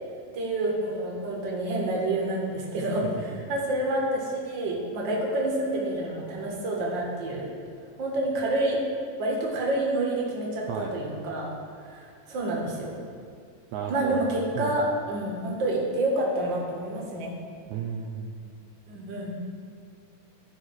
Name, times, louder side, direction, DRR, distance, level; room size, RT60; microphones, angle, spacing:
voice 1, 0.3-7.4 8.0-8.8 9.2-11.5 11.8-12.9 13.9-17.3 18.9-19.4, right 1 dB, 40° right, -2 dB, 1.9 m, -28 dB
voice 2, 13.7-14.2 14.6-14.8 17.7-18.4, right 7 dB, 80° right, 1 dB, 1.8 m, -33 dB
15.0 x 5.7 x 4.8 m, 2.2 s
omnidirectional pair, 3.9 m